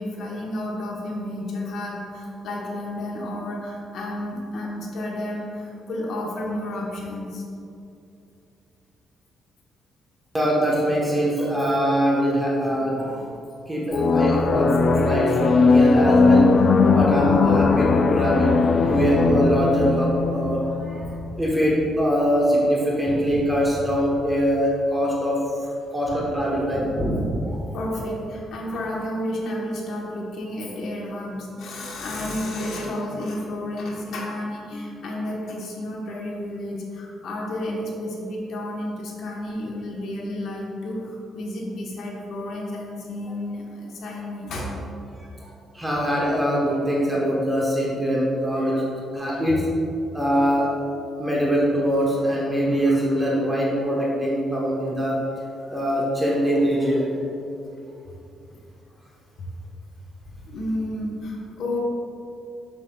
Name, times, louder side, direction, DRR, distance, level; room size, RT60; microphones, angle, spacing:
voice 1, 0.0-7.4 27.7-44.7 45.4-45.5 60.5-61.8, left 1 dB, 65° left, -3 dB, 1.1 m, -31 dB
voice 2, 10.3-13.2 13.7-16.5 16.8-21.1 21.4-27.7 45.2-45.3 45.7-48.9 49.1-49.7 50.1-50.7 51.2-55.2 55.7-57.1, equal, 10° right, -5 dB, 1.1 m, -23 dB
sound 1, 13.9-21.3, left 4 dB, 45° left, 0.3 m, -19 dB
7.4 x 6.4 x 2.3 m, 2.6 s
cardioid pair, 130°, 0 cm